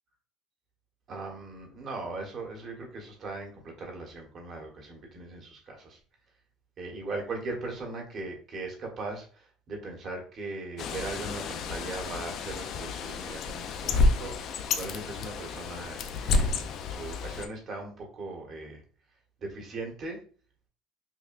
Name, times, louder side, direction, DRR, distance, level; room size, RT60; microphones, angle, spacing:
voice 1, 1.1-6.0 6.8-16.6 16.9-18.8 19.4-20.2, right 3 dB, 40° right, 1 dB, 1.3 m, -39 dB
Bird, 10.8-17.5, left 3 dB, 50° left, 0.5 m, -30 dB
5.7 x 2.2 x 2.5 m, 0.41 s
cardioid pair, 125°, 0 cm